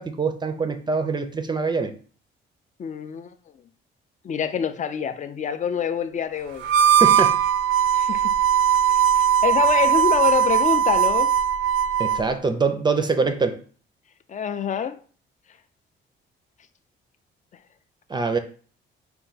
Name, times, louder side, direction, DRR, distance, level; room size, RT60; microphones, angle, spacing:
voice 1, 0.0-1.9 7.0-7.4 12.0-13.6 18.1-18.4, right 4 dB, 20° right, 0.5 m, -24 dB
voice 2, 2.8-3.3 4.2-7.0 7.9-8.3 9.1-11.3 14.3-15.0, left 8 dB, 40° left, 0.4 m, -26 dB
Harmonica, 6.6-12.3, right 9 dB, 80° right, 0.5 m, -19 dB
4.5 x 2.2 x 3.9 m
cardioid pair, 90°, 20 cm